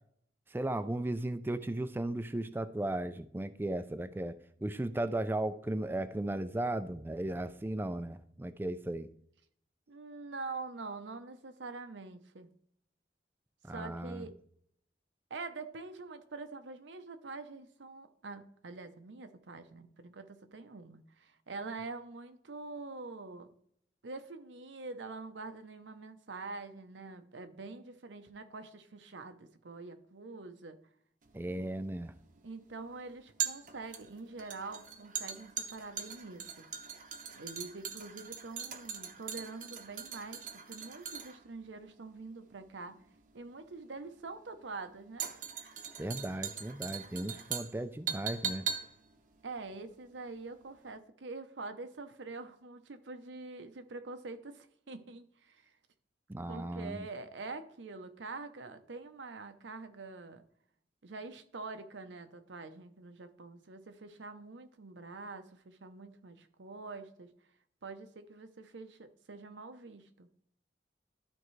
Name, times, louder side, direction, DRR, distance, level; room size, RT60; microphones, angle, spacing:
voice 1, 0.5-4.3 4.6-9.1 13.6-14.3 31.3-32.1 46.0-48.7 56.3-57.1, right 1 dB, 10° right, 11 dB, 0.3 m, -36 dB
voice 2, 9.9-12.5 13.7-14.4 15.3-23.5 24.0-30.8 32.4-36.7 37.4-43.0 43.3-45.3 49.4-55.7 56.5-60.4 61.0-67.3 67.8-70.3, right 3 dB, 90° right, 8 dB, 0.8 m, -45 dB
sound 1, 31.3-50.5 50.8-50.9, right 8 dB, 45° right, 0.7 m, -41 dB
12.5 x 4.4 x 3.2 m, 0.68 s
head